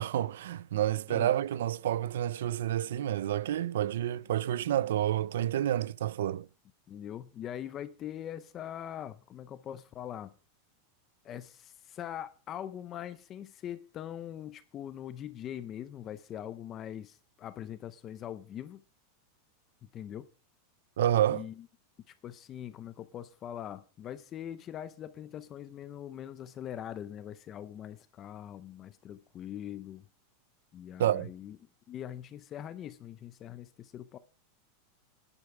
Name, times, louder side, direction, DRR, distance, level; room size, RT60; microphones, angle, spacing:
voice 1, 0.0-6.5 21.0-21.4 31.0-31.3, right 12 dB, 90° right, 0.5 m, -29 dB
voice 2, 6.9-10.3 11.2-18.8 19.9-20.3 21.3-21.7 22.1-30.1 30.7-31.6 31.9-34.2, left 10 dB, 20° left, 0.5 m, -42 dB
10.5 x 9.9 x 4.8 m
supercardioid pair, 175°, 0 cm